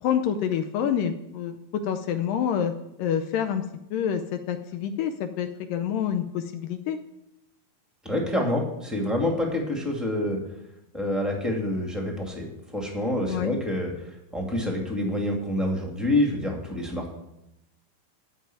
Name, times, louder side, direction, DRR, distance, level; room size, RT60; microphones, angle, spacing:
voice 1, 0.0-2.7 3.0-3.7 3.9-7.0 13.3-13.5, left 8 dB, 80° left, 8 dB, 2.1 m, -27 dB
voice 2, 8.0-10.4 10.9-17.1, left 1 dB, ahead, 0 dB, 1.0 m, -27 dB
13.5 x 5.5 x 9.1 m, 0.87 s
omnidirectional pair, 4.4 m